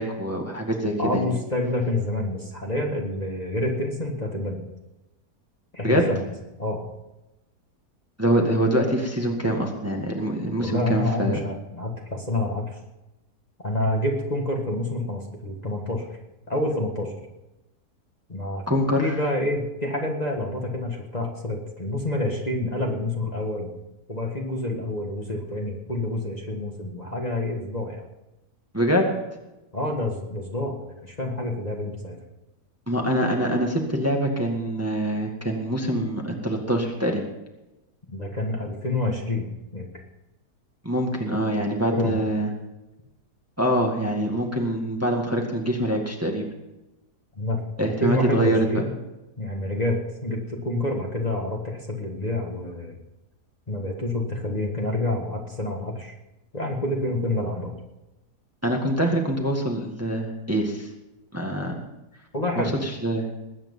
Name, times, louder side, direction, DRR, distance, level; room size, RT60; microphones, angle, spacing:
voice 1, 0.0-1.2 5.8-6.1 8.2-11.4 18.7-19.2 28.7-29.1 32.9-37.2 40.8-42.5 43.6-46.5 47.8-48.8 58.6-60.9 61.3-61.8 62.6-63.3, right 1 dB, 10° right, 1 dB, 1.8 m, -24 dB
voice 2, 1.0-4.6 5.7-6.2 6.6-6.9 10.6-12.8 13.6-16.1 16.5-17.1 18.3-18.6 19.0-23.7 24.1-28.1 29.7-32.2 38.1-39.9 41.9-42.2 47.4-48.9 49.4-53.0 53.7-56.1 56.5-57.7 62.3-62.7, left 1 dB, 25° left, 0 dB, 1.8 m, -28 dB
20.5 x 9.0 x 5.5 m, 0.98 s
omnidirectional pair, 1.8 m